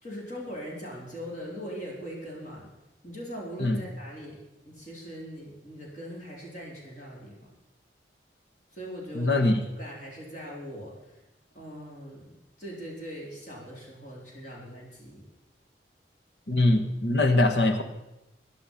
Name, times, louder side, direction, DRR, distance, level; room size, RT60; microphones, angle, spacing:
voice 1, 0.0-2.7 3.0-7.5 8.7-11.2 11.5-15.3, equal, 45° left, -3 dB, 4.4 m, -41 dB
voice 2, 9.1-9.6 16.5-17.8, left 2 dB, 75° left, 7 dB, 1.4 m, -22 dB
15.5 x 10.0 x 5.7 m, 0.94 s
head